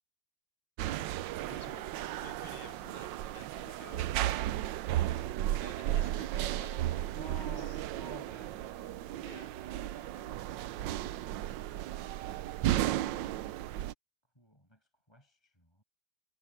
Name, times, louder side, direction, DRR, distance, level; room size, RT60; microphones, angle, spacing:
sound 1, 0.8-13.9, right 13 dB, 90° right, 1.3 m, -34 dB
voice 1, 1.4-4.0 5.4-7.8 9.2-9.5, left 7 dB, 35° left, 1.2 m, -54 dB
voice 2, 7.1-11.1 14.3-15.8, equal, 15° left, 7.2 m, -54 dB
omnidirectional pair, 1.9 m